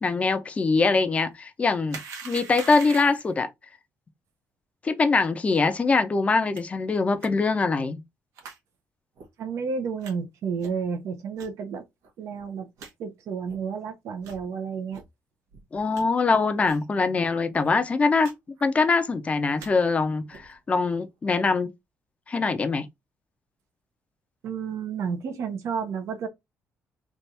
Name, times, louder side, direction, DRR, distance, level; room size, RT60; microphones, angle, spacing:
voice 1, 0.0-2.0 2.2-3.5 4.8-8.0 15.7-18.3 18.6-21.7 22.3-22.8, left 4 dB, 25° left, 0.6 m, -23 dB
sound 1, 1.9-3.3 6.6-6.7 7.2-7.3 8.4-8.6 9.2-9.3 10.0-10.1 10.6-10.9 11.4-11.5 12.0-12.1 12.4-12.5 12.8-12.9 13.5-13.6 14.2-14.4 14.9-15.0 15.5-16.0 16.6-16.9 17.1-17.2 17.5-17.7 18.2-18.3 18.6-19.0 19.4-19.7 20.3-20.5, right 5 dB, 90° right, 1.2 m, -42 dB
voice 2, 9.4-11.8 12.2-12.7 13.0-15.0 24.4-26.3, right 6 dB, 70° right, 0.9 m, -31 dB
3.4 x 2.5 x 4.2 m
cardioid pair, 140°, 5 cm